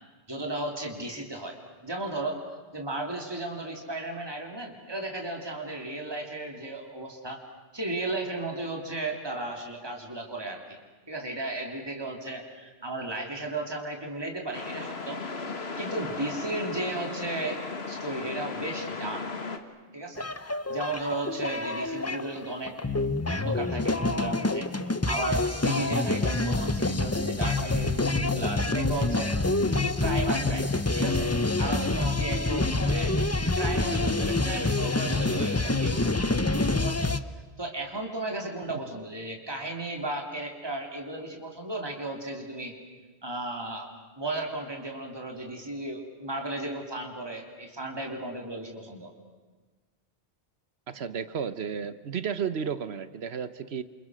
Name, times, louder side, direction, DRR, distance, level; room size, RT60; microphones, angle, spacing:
voice 1, 0.3-1.6 1.8-2.4 2.7-7.4 7.7-10.8 11.1-15.2 15.5-19.3 19.9-20.3 20.7-22.8 23.3-24.7 25.1-29.3 29.7-31.3 31.6-33.1 33.5-36.1 36.6-37.1 37.6-42.7 43.2-43.9 44.2-49.1, right 2 dB, 25° right, 2 dB, 3.2 m, -35 dB
sound 1, 14.5-19.6, left 4 dB, 75° left, 2.1 m, -36 dB
sound 2, 20.2-37.2, left 2 dB, 15° left, 0.8 m, -27 dB
voice 2, 50.9-53.8, right 7 dB, 80° right, 13 dB, 1.2 m, -33 dB
29.5 x 27.0 x 6.3 m, 1.3 s
omnidirectional pair, 1.1 m